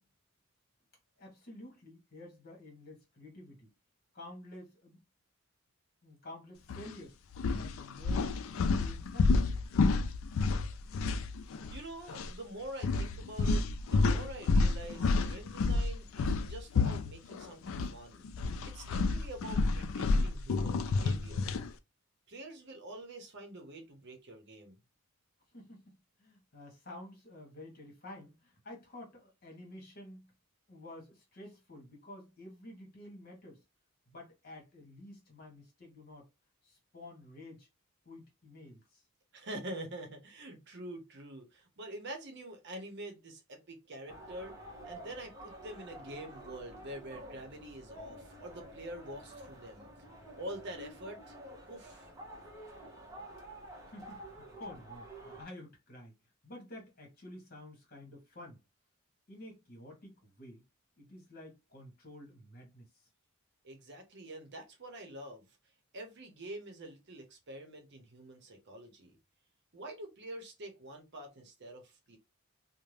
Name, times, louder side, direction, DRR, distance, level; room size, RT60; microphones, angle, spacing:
voice 1, 1.2-3.7 4.1-5.0 6.0-7.2 7.5-9.5 25.5-30.3 30.7-33.6 34.1-36.3 36.6-37.7 38.0-39.0 53.9-56.1 56.4-58.6 59.3-60.6 61.0-62.9, left 1 dB, 45° left, 1.2 m, -51 dB
sound 1, 6.7-6.9 7.3-11.8 12.1-12.3 12.8-17.9 18.2-21.7, left 3 dB, 70° left, 0.3 m, -30 dB
voice 2, 11.7-13.6 13.9-18.3 18.6-21.5 22.3-24.8 39.3-44.6 44.8-50.1 50.4-51.4 51.7-52.1 63.6-65.5 65.9-69.2 69.7-72.2, right 1 dB, 55° right, 0.8 m, -46 dB
sound 2, 44.1-55.5, right 1 dB, 15° right, 0.8 m, -49 dB
2.7 x 2.1 x 3.1 m
head